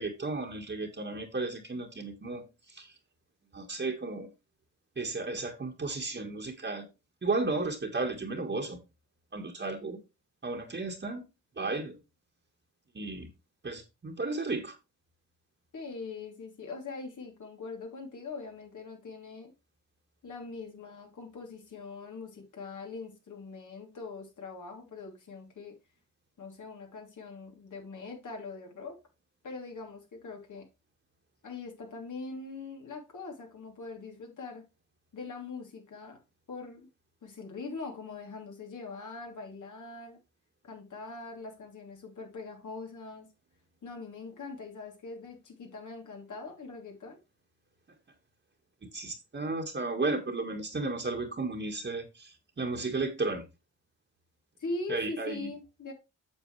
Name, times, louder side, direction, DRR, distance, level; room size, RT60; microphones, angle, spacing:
voice 1, 0.0-2.9 3.5-4.3 5.0-6.9 7.2-8.8 9.3-10.0 10.4-11.3 11.6-12.0 12.9-13.3 13.6-14.8 48.8-53.5 54.9-55.5, right 3 dB, 35° right, 1.9 m, -34 dB
voice 2, 15.7-19.5 20.2-25.8 26.4-29.0 29.4-30.7 31.4-34.6 35.1-36.2 36.5-36.9 37.2-40.2 40.6-43.3 43.8-47.2 54.6-55.9, left 3 dB, 65° left, 3.4 m, -42 dB
8.5 x 6.7 x 3.3 m
cardioid pair, 70°, 32 cm